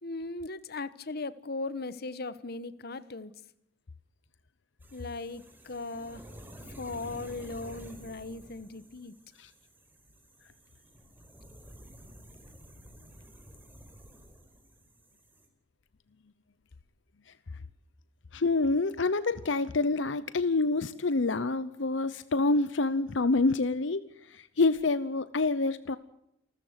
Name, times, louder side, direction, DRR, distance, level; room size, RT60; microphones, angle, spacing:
voice 1, 0.0-3.3 4.9-6.3 6.7-9.1, left 3 dB, 55° left, 16 dB, 1.2 m, -38 dB
sound 1, 4.8-15.5, equal, 10° right, 4.8 m, -51 dB
voice 2, 18.3-26.0, left 3 dB, 75° left, 15 dB, 0.8 m, -27 dB
28.5 x 14.0 x 8.1 m, 0.82 s
head